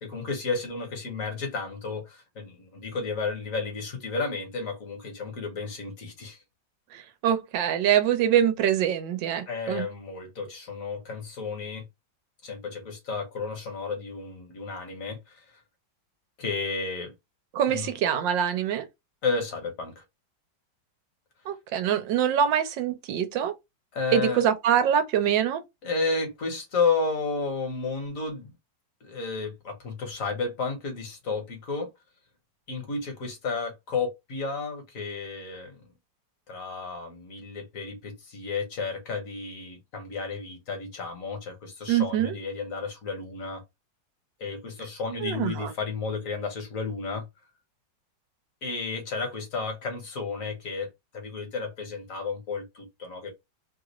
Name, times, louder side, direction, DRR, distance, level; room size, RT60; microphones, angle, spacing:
voice 1, 0.0-6.4 9.5-11.9 12.4-15.4 16.4-17.1 17.7-18.0 19.2-20.0 23.9-24.5 25.8-28.5 29.0-31.9 32.7-35.8 36.5-43.6 44.4-47.3 48.6-50.9 51.1-53.3, left 4 dB, 50° left, 1.3 m, -32 dB
voice 2, 7.2-9.8 17.5-18.9 21.5-23.5 24.1-25.6 41.9-42.3 45.2-45.7, right 9 dB, 85° right, 1.4 m, -24 dB
3.3 x 2.4 x 2.9 m
omnidirectional pair, 1.9 m